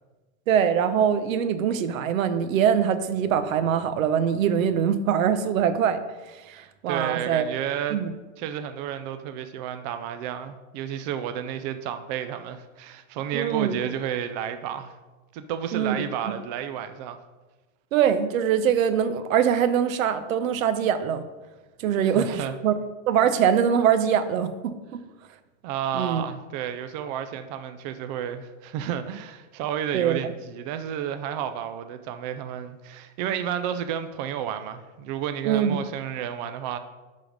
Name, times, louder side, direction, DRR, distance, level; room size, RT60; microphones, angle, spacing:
voice 1, 0.5-6.0 6.5-6.6 6.8-7.6 7.9-8.1 13.3-13.8 15.7-16.0 17.9-21.2 21.8-22.7 23.1-25.0 25.9-26.2 29.9-30.3 35.4-35.8, right 8 dB, 85° right, 10 dB, 0.9 m, -23 dB
voice 2, 6.5-8.0 8.4-15.0 15.3-17.2 22.0-22.6 25.6-36.8, right 9 dB, 35° right, 9 dB, 0.4 m, -31 dB
10.5 x 3.8 x 5.1 m, 1.2 s
supercardioid pair, 155°, 39 cm